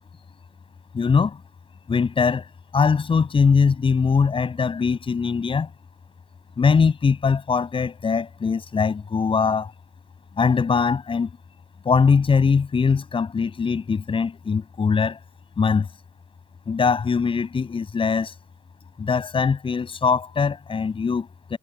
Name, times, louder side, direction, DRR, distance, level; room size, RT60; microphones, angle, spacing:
voice 1, 0.9-1.4 1.9-2.5 2.7-5.7 6.6-9.7 10.4-11.3 11.8-15.2 15.6-15.9 16.7-18.3 19.0-21.6, left 5 dB, 30° left, 7.8 m, -21 dB
cardioid pair, 110°, 17 cm